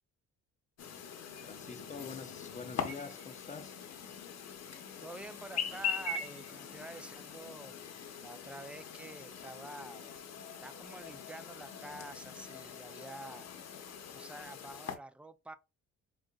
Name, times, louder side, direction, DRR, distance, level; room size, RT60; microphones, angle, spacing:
Chirp tweet, 0.8-15.0, left 6 dB, 60° left, 0.9 m, -42 dB
voice 1, 1.4-3.8, left 5 dB, 25° left, 0.7 m, -46 dB
voice 2, 5.0-7.9 8.2-10.1 10.6-15.5, right 2 dB, 5° right, 0.4 m, -48 dB
4.9 x 2.5 x 2.3 m
cardioid pair, 90°, 30 cm